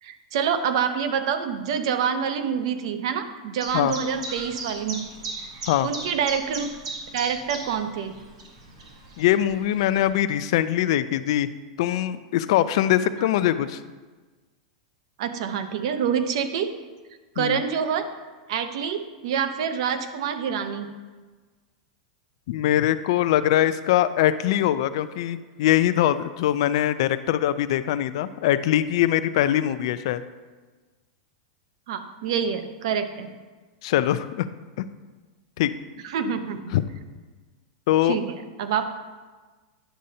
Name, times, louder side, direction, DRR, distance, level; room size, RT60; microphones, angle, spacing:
voice 1, 0.0-5.0 5.8-6.7 7.1-8.1 13.2-13.3 15.2-16.7 17.4-18.1 18.5-20.9 31.9-33.3 36.0-36.6 38.0-38.9, right 7 dB, 65° right, 9 dB, 0.7 m, -26 dB
Chirp tweet, 3.6-10.1, right 2 dB, 90° right, 2.0 m, -38 dB
voice 2, 9.2-11.5 11.8-13.8 17.4-17.6 22.5-30.2 33.8-34.5 34.8-34.9 35.6-35.7 36.7-36.8 37.9-38.2, left 12 dB, 60° left, 13 dB, 0.4 m, -22 dB
10.0 x 6.4 x 2.8 m, 1.3 s
supercardioid pair, 150°, 3 cm